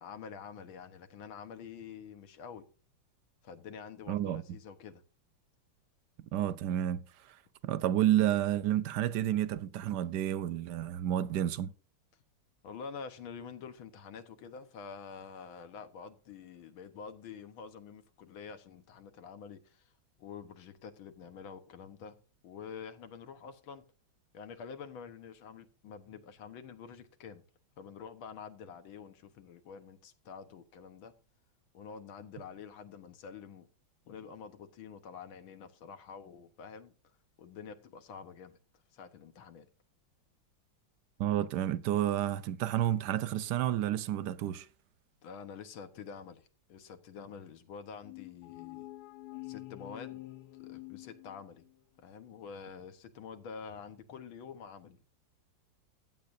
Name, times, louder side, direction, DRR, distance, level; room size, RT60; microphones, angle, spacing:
voice 1, 0.0-2.7 3.4-5.0 12.6-19.9 20.2-22.2 22.4-23.8 24.3-27.5 27.8-31.1 31.7-33.7 34.1-38.6 38.9-39.7 45.2-48.9 49.4-50.2 50.6-51.6 52.0-55.0, left 6 dB, 90° left, 1.9 m, -47 dB
voice 2, 4.1-4.4 6.3-7.4 7.6-11.7 41.2-44.7, right 12 dB, 70° right, 1.1 m, -30 dB
sound 1, 48.0-51.8, left 20 dB, 70° left, 1.0 m, -47 dB
15.0 x 9.2 x 2.6 m
omnidirectional pair, 2.2 m